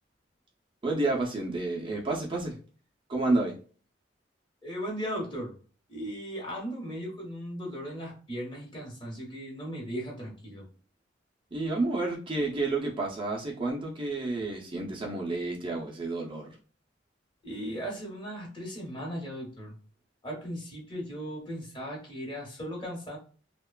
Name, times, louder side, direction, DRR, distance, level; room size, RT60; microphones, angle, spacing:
voice 1, 0.8-2.6 3.1-3.5 11.5-16.6, right 2 dB, 30° right, -1 dB, 0.5 m, -30 dB
voice 2, 4.6-5.5 5.9-10.6 17.4-19.7 20.2-23.2, equal, 25° left, -2 dB, 1.0 m, -37 dB
2.8 x 2.2 x 2.2 m, 0.39 s
head